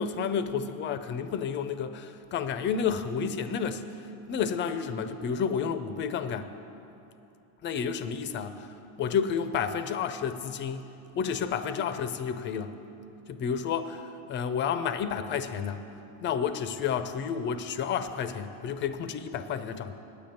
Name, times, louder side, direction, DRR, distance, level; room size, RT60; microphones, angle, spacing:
voice 1, 0.0-3.8 4.3-6.5 7.6-10.9 11.2-12.7 13.3-15.8 16.2-20.0, left 7 dB, 30° left, 10 dB, 0.4 m, -31 dB
9.6 x 7.7 x 8.6 m, 2.9 s
supercardioid pair, 140°, 45 cm